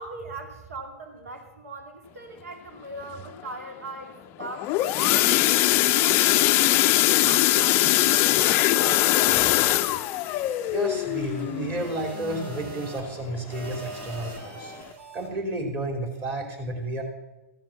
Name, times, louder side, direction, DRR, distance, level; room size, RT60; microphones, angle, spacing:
voice 1, 0.0-5.3 5.6-9.8, right 2 dB, 80° right, 6 dB, 2.4 m, -40 dB
sound 1, 4.4-13.1 13.5-13.7 14.0-14.1 14.6-14.7, left 16 dB, 30° left, 0.4 m, -22 dB
sound 2, 5.0-15.3, right 3 dB, 50° right, 3.7 m, -44 dB
voice 2, 10.7-14.7 15.1-17.0, right 1 dB, 30° right, 3 dB, 3.0 m, -31 dB
14.0 x 7.5 x 7.1 m, 1.0 s
hypercardioid pair, 135°, 8 cm